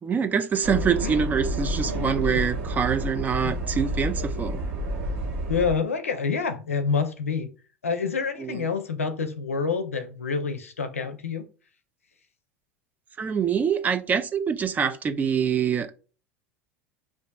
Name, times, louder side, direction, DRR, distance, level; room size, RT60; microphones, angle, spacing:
voice 1, 0.0-4.6 8.4-8.6 13.2-15.9, right 7 dB, 20° right, 0.4 m, -25 dB
sound 1, 0.6-5.7, right 1 dB, 55° right, 1.2 m, -29 dB
voice 2, 1.5-2.2 3.4-3.5 5.5-7.5 7.8-11.4, left 5 dB, 80° left, 0.5 m, -28 dB
4.9 x 2.5 x 2.3 m
figure-of-eight pair, 75°, 7 cm